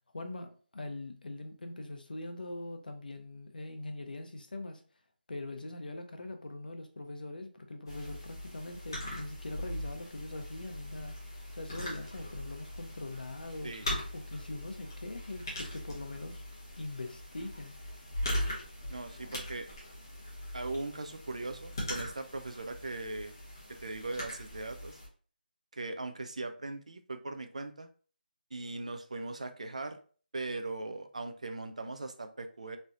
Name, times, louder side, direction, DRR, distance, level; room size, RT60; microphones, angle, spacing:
voice 1, 0.1-4.8 5.3-11.1 11.6-13.7 14.1-16.4 16.8-17.7, left 2 dB, 65° left, 0.6 m, -42 dB
sound 1, 7.9-25.1, left 1 dB, 25° left, 0.9 m, -41 dB
voice 2, 18.9-19.7 20.5-23.3 23.8-25.0 25.7-27.9 28.5-30.0 30.3-32.8, right 2 dB, 45° right, 0.3 m, -39 dB
3.1 x 2.6 x 2.5 m
figure-of-eight pair, 180°, 5 cm